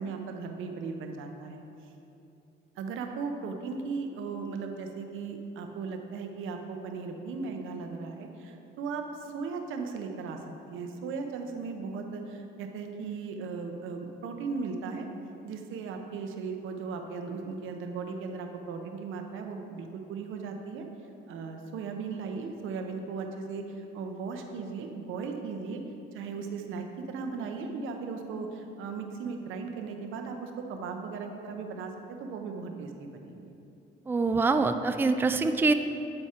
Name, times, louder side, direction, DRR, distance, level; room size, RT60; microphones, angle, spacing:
voice 1, 0.0-1.6 2.8-10.4 10.7-15.1 15.4-20.8 21.3-25.8 26.1-33.5, right 4 dB, 85° right, 4 dB, 0.8 m, -37 dB
voice 2, 34.1-35.7, right 3 dB, 10° right, 8 dB, 0.3 m, -24 dB
8.7 x 4.7 x 4.3 m, 2.8 s
cardioid pair, 90°, 20 cm